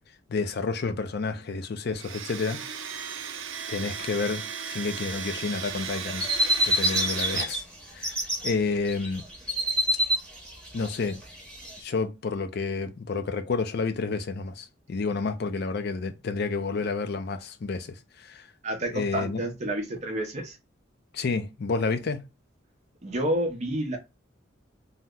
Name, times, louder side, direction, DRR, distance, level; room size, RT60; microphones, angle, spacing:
voice 1, 0.3-2.8 3.7-6.3 6.7-7.6 7.9-9.2 10.7-11.2 11.8-18.5 18.9-19.4 21.1-22.2, left 4 dB, 55° left, 0.4 m, -30 dB
Domestic sounds home sounds, 1.9-7.4, right 7 dB, 85° right, 0.5 m, -36 dB
sound 1, 5.6-7.6 7.9-8.5 8.9-11.8, right 1 dB, 5° left, 0.9 m, -27 dB
voice 2, 18.6-20.6 23.0-24.0, right 1 dB, 35° right, 0.6 m, -29 dB
2.8 x 2.0 x 3.5 m
head